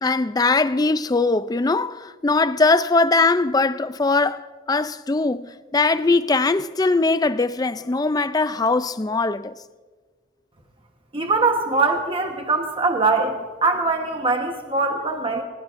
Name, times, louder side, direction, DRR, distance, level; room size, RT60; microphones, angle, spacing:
voice 1, 0.0-9.5, left 3 dB, 20° left, 0.4 m, -21 dB
voice 2, 11.1-15.4, right 3 dB, 25° right, 1.1 m, -22 dB
24.5 x 21.0 x 2.6 m
head